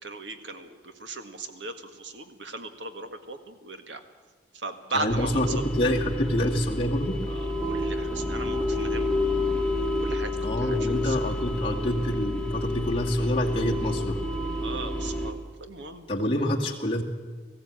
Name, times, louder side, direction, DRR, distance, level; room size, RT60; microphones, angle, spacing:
voice 1, 0.0-4.0 4.6-5.6 7.6-9.3 10.0-10.3 10.6-10.8 11.0-11.2 14.6-16.1, right 3 dB, 80° right, 8 dB, 1.7 m, -37 dB
voice 2, 4.9-7.2 10.4-14.2 16.1-17.0, left 1 dB, 30° left, -2 dB, 2.2 m, -27 dB
sound 1, 5.1-15.3, left 1 dB, 5° left, 1.8 m, -29 dB
19.0 x 15.5 x 8.8 m, 1.4 s
head